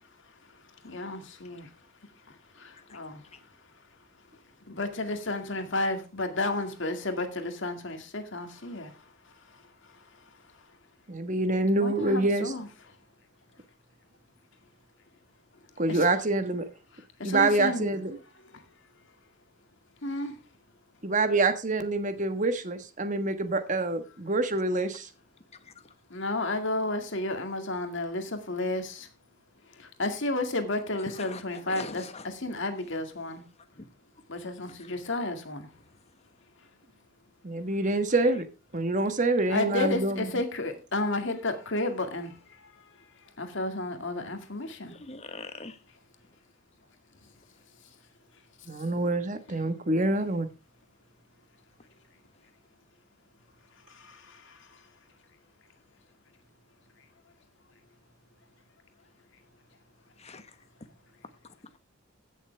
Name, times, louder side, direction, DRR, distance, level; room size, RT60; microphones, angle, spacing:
voice 1, 0.8-1.7 2.6-3.2 4.7-8.9 11.8-12.7 15.9-16.0 17.2-17.8 20.0-20.3 26.1-29.1 29.8-33.4 34.3-35.7 39.5-42.3 43.4-44.9 53.9-54.6, left 2 dB, 60° left, 2.1 m, -32 dB
voice 2, 11.1-12.5 15.8-16.7 17.2-18.2 21.0-25.1 37.4-38.5 38.7-40.4 48.7-50.5, right 2 dB, 35° right, 1.4 m, -26 dB
voice 3, 31.2-32.3 34.8-34.9 44.8-45.8 60.2-60.4, left 3 dB, 30° left, 1.2 m, -42 dB
16.0 x 7.1 x 3.4 m
head